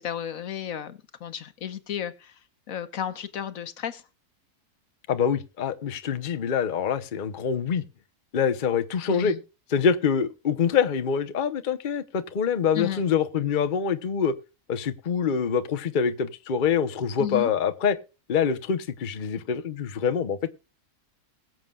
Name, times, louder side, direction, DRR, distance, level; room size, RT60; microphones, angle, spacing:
voice 1, 0.0-2.4 2.7-4.0 9.1-9.4 12.7-13.0 17.2-17.5, left 9 dB, 70° left, 1.4 m, -33 dB
voice 2, 5.1-7.8 8.3-9.3 9.7-14.3 14.7-18.0 18.3-20.5, left 7 dB, 40° left, 0.9 m, -25 dB
21.5 x 7.6 x 2.3 m
omnidirectional pair, 1.5 m